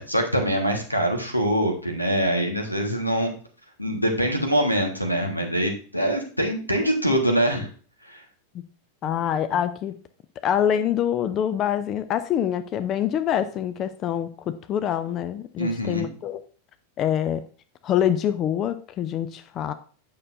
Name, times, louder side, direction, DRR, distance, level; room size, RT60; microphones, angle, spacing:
voice 1, 0.0-3.3 3.8-7.7 8.0-8.2 9.0-9.1 15.6-16.1, equal, 90° left, 3 dB, 1.4 m, -24 dB
voice 2, 9.0-9.9 10.4-16.4 17.0-17.4 17.8-19.7, left 10 dB, 30° left, 11 dB, 0.4 m, -25 dB
8.7 x 6.4 x 2.6 m, 0.41 s
figure-of-eight pair, 90°, 0 cm